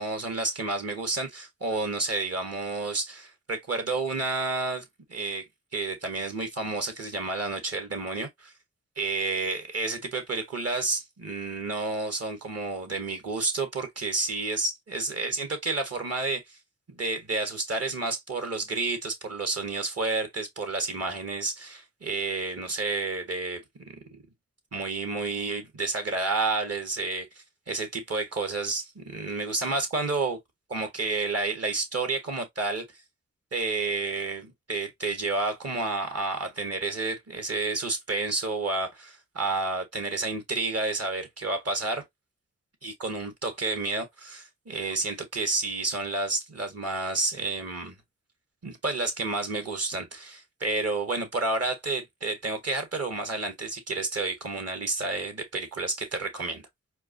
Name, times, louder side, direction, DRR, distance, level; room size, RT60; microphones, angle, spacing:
voice 1, 0.0-5.5 5.7-8.5 9.0-16.6 16.9-24.2 24.7-27.3 27.7-30.4 30.7-32.8 33.5-42.0 42.8-48.0 48.6-56.6, right 3 dB, 55° right, 1.4 m, -30 dB
4.5 x 2.3 x 2.6 m
cardioid pair, 40°, 30 cm